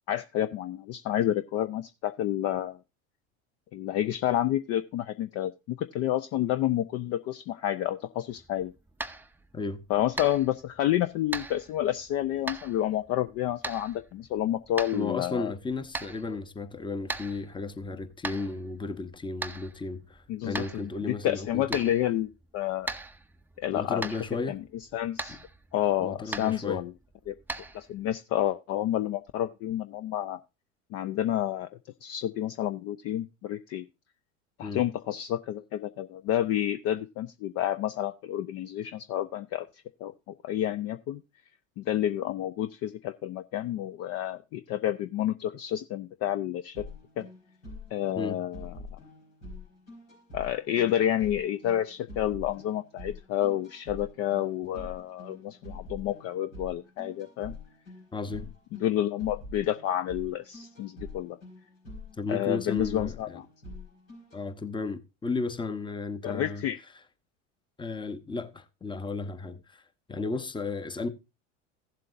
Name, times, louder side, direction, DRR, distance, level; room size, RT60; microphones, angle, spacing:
voice 1, 0.1-2.8 3.7-8.7 9.9-15.5 20.3-22.9 23.6-24.1 24.5-24.6 24.9-25.4 25.7-26.9 27.3-27.4 27.7-30.4 30.9-31.7 32.0-33.8 34.6-41.2 41.8-46.9 47.2-47.3 47.9-49.0 50.3-57.6 58.8-61.4 62.3-63.4 66.2-66.8, left 12 dB, 40° left, 0.5 m, -29 dB
sound 1, 8.3-28.2, right 2 dB, 5° right, 0.5 m, -41 dB
voice 2, 14.9-21.9 23.7-24.6 26.0-26.8 34.6-34.8 48.2-48.4 58.1-58.5 62.2-63.4 64.3-66.6 67.8-69.8 70.1-71.1, left 3 dB, 10° left, 0.9 m, -34 dB
sound 2, 46.7-64.4, left 2 dB, 90° left, 4.9 m, -45 dB
15.5 x 7.6 x 2.5 m
hypercardioid pair, 80°, 38 cm